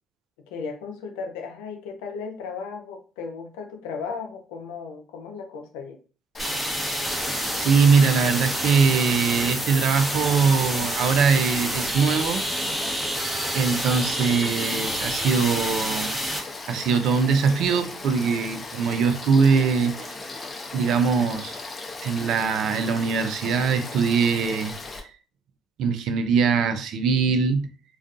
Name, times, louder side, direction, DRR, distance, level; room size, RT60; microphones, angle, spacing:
voice 1, 0.5-6.0, left 5 dB, 85° left, 0.5 m, -35 dB
Frog / Stream, 6.3-25.0, left 3 dB, 30° left, 0.6 m, -37 dB
sound 1, 6.4-16.4, equal, 10° right, 0.8 m, -28 dB
voice 2, 7.5-12.4 13.5-16.2 16.7-20.1 20.7-21.6 22.0-25.1 25.8-27.7, right 5 dB, 70° right, 0.4 m, -22 dB
2.4 x 2.3 x 2.4 m
hypercardioid pair, 60°, 0 cm